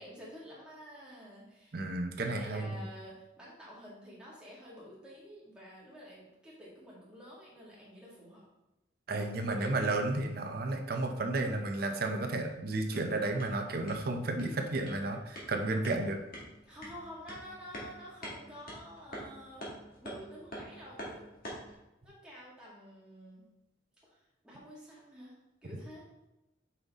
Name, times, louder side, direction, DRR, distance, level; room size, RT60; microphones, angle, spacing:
voice 1, 0.0-1.8 2.2-8.4 9.1-9.9 16.7-19.6 20.0-21.2 22.0-23.4 24.0-25.4 25.6-26.1, equal, 5° right, -7 dB, 1.9 m, -49 dB
voice 2, 1.7-2.8 9.1-16.2, right 2 dB, 50° right, 5 dB, 0.6 m, -32 dB
sound 1, 12.7-21.8, equal, 50° left, 1.8 m, -47 dB
5.7 x 5.3 x 3.5 m, 0.94 s
head